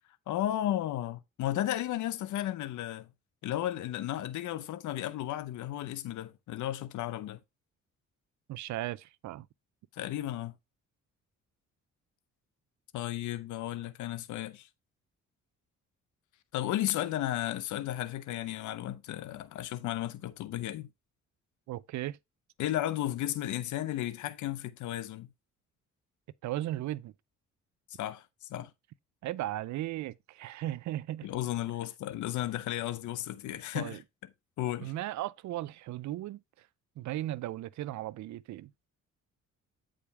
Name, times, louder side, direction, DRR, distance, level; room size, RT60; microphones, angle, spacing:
voice 1, 0.3-3.1 3.4-7.4 9.9-10.5 12.9-14.7 16.5-20.9 22.6-25.3 28.0-28.7 31.2-34.0 34.6-34.9, left 13 dB, 75° left, 0.7 m, -34 dB
voice 2, 8.5-9.5 21.7-22.2 26.4-27.1 29.2-31.3 33.7-34.0 34.8-36.4 37.0-38.7, right 14 dB, 70° right, 0.5 m, -36 dB
8.4 x 5.0 x 3.3 m
cardioid pair, 90°, 30 cm